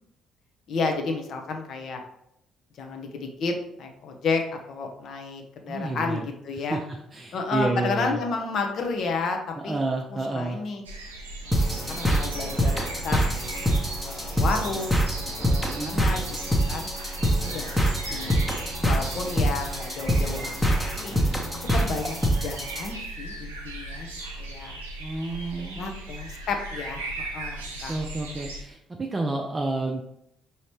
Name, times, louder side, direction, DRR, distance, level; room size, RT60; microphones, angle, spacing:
voice 1, 0.7-2.0 2.8-4.4 4.7-6.8 7.3-9.4 9.6-9.8 10.1-10.8 11.4-13.3 13.7-15.1 15.4-16.4 16.7-16.9 17.4-18.3 18.8-20.8 21.0-21.2 21.6-22.2 22.4-24.1 24.4-24.8 25.6-28.0, left 4 dB, 55° left, 3 dB, 0.7 m, -31 dB
voice 2, 5.7-8.2 9.5-10.6 15.6-16.0 25.0-25.9 27.9-30.0, right 2 dB, 25° right, 1 dB, 0.5 m, -30 dB
sound 1, 10.9-28.6, right 2 dB, 85° right, 0.5 m, -37 dB
sound 2, 11.5-22.9, equal, 5° left, 0.9 m, -25 dB
5.1 x 2.8 x 3.1 m, 0.78 s
figure-of-eight pair, 45°, 0 cm